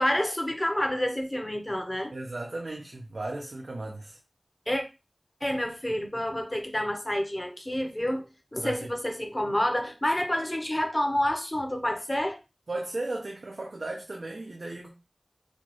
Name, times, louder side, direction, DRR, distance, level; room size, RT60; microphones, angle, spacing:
voice 1, 0.0-2.1 4.7-4.8 5.4-8.2 8.5-12.4, left 1 dB, 25° left, 0.8 m, -28 dB
voice 2, 2.1-4.2 8.6-8.9 12.7-14.9, right 2 dB, 85° right, 0.6 m, -35 dB
4.3 x 2.4 x 3.0 m
wide cardioid pair, 55°, 0 cm